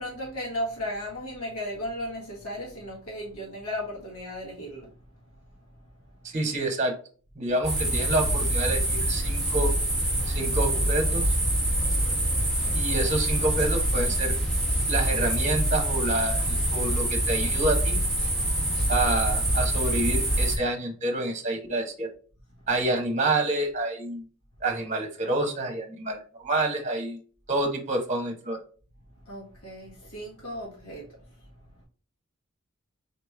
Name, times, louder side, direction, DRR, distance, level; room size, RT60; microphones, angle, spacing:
voice 1, 0.0-4.9 29.2-31.1, equal, 85° left, 1.6 m, -35 dB
voice 2, 6.2-7.0 7.4-9.7 10.3-11.2 12.7-14.4 14.9-18.0 18.9-22.1 22.7-24.2 24.6-27.2 27.5-28.6, right 2 dB, 35° right, 0.9 m, -28 dB
sound 1, 7.6-20.6, right 1 dB, 5° left, 1.2 m, -25 dB
4.1 x 3.0 x 3.4 m
head